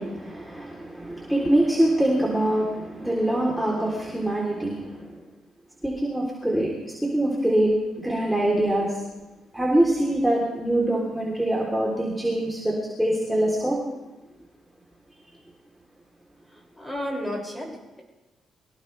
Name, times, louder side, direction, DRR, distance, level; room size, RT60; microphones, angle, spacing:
voice 1, 0.0-5.2 5.8-6.7 7.0-7.7 8.0-9.0 9.5-13.8, right 1 dB, 5° right, -4 dB, 3.6 m, -24 dB
voice 2, 16.5-18.0, equal, 15° left, -1 dB, 6.3 m, -33 dB
24.0 x 17.0 x 3.4 m, 1.1 s
cardioid pair, 90°, 0 cm